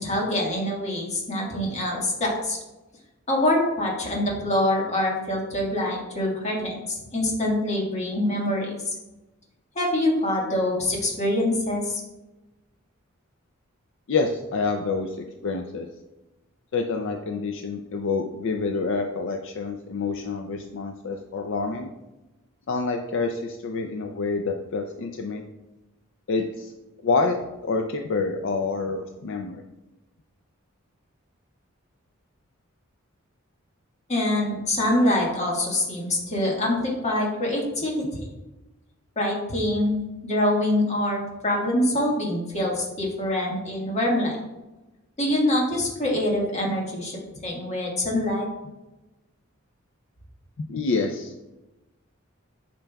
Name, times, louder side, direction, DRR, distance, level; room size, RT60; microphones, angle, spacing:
voice 1, 0.0-2.6 3.3-8.8 9.7-12.0 34.1-38.0 39.1-40.0 40.2-44.4 45.2-48.5, left 1 dB, 35° left, -2 dB, 1.6 m, -25 dB
voice 2, 14.1-15.2 15.4-15.9 16.7-21.9 22.7-25.4 26.3-26.7 27.0-27.4 27.6-29.6 50.6-51.3, left 4 dB, 65° left, 4 dB, 0.4 m, -27 dB
8.9 x 5.2 x 2.3 m, 1.0 s
head